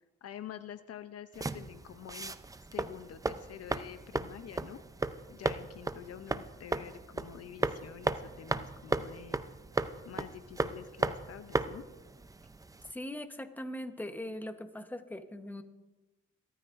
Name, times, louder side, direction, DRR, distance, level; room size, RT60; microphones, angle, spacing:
voice 1, 0.2-2.4 2.7-4.8 5.3-9.4 10.0-11.9, left 10 dB, 55° left, 11 dB, 0.7 m, -47 dB
sound 1, 1.3-12.9, right 3 dB, 10° right, 0.5 m, -36 dB
voice 2, 12.9-15.6, left 1 dB, 5° left, 8 dB, 1.0 m, -40 dB
22.0 x 13.0 x 2.6 m, 1.1 s
cardioid pair, 90°, 30 cm